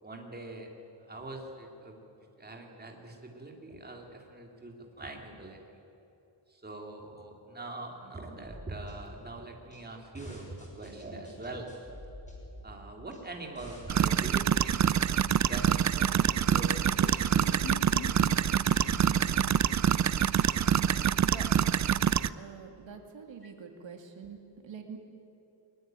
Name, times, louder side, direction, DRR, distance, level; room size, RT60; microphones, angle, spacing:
voice 1, 0.0-0.7 1.1-2.0 2.4-5.6 6.5-11.7 12.6-15.2 15.5-17.2, right 2 dB, 20° right, 1 dB, 2.9 m, -43 dB
sound 1, 8.4-22.0, left 1 dB, 15° left, 5.4 m, -49 dB
sound 2, 13.9-22.3, right 9 dB, 40° right, 0.4 m, -26 dB
Laughter, 16.8-21.4, left 6 dB, 70° left, 1.5 m, -45 dB
voice 2, 19.0-19.4 20.7-21.8 22.3-25.0, right 7 dB, 85° right, 4 dB, 2.6 m, -45 dB
22.5 x 20.5 x 9.1 m, 2.8 s
wide cardioid pair, 160°, 44 cm